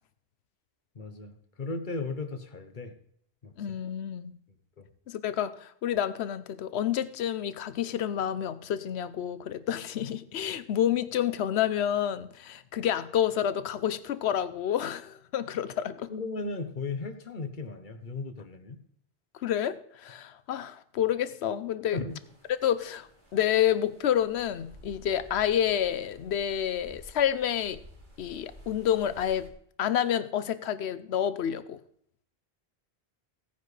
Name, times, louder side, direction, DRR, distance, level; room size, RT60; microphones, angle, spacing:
voice 1, 0.9-1.3 1.6-2.9 3.4-3.5 4.8-4.9 16.1-18.8 21.9-22.2, left 3 dB, 50° left, 9 dB, 1.2 m, -36 dB
voice 2, 3.6-4.3 5.1-16.1 19.4-22.0 22.5-27.8 28.2-29.5 29.8-31.8, left 10 dB, 80° left, 14 dB, 0.9 m, -29 dB
sound 1, 22.1-29.5, equal, 45° right, 3.0 m, -53 dB
16.5 x 9.4 x 3.3 m, 0.68 s
omnidirectional pair, 1.1 m